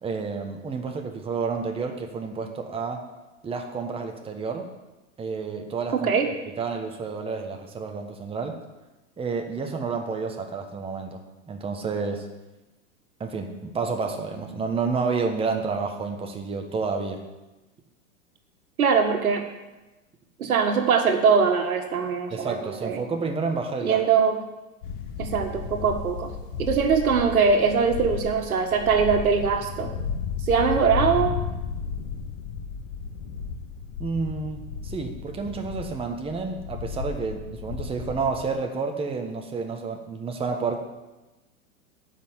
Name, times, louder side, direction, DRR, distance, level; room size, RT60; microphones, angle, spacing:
voice 1, 0.0-3.0 3.4-4.7 5.2-6.1 6.6-8.6 9.2-11.2 11.5-12.3 13.2-17.2 22.3-24.0 34.0-40.8, right 4 dB, 15° right, 3 dB, 1.2 m, -30 dB
voice 2, 5.9-6.3 18.8-19.4 20.4-22.6 22.8-23.0 23.8-24.4 25.2-26.3 26.6-29.9 30.5-31.3, right 6 dB, 80° right, 5 dB, 1.7 m, -22 dB
sound 1, 24.8-38.5, left 6 dB, 60° left, 2.1 m, -33 dB
9.7 x 5.9 x 8.2 m, 1.1 s
hypercardioid pair, 110°, 42 cm